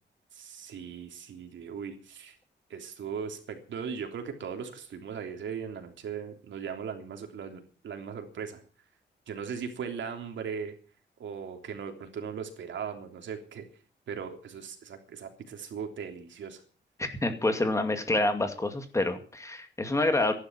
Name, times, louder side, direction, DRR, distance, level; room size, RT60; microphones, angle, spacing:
voice 1, 0.3-2.3 2.7-8.6 9.3-10.7 11.2-13.7 14.1-16.6, right 6 dB, 90° right, 4 dB, 3.3 m, -38 dB
voice 2, 17.0-20.3, left 2 dB, 15° left, 7 dB, 2.3 m, -27 dB
14.0 x 11.5 x 7.5 m, 0.41 s
wide cardioid pair, 180°, 19 cm